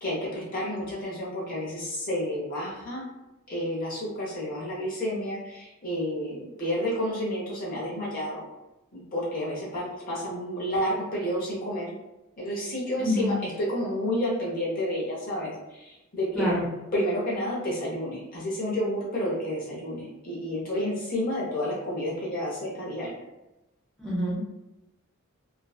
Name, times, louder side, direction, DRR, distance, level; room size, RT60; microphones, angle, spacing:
voice 1, 0.0-3.0 3.5-8.4 8.9-11.9 12.4-16.5 16.9-23.1, equal, 40° left, -5 dB, 0.7 m, -30 dB
voice 2, 13.0-13.3 16.3-16.6 24.0-24.4, left 1 dB, ahead, -9 dB, 0.8 m, -26 dB
2.5 x 2.2 x 2.3 m, 0.98 s
head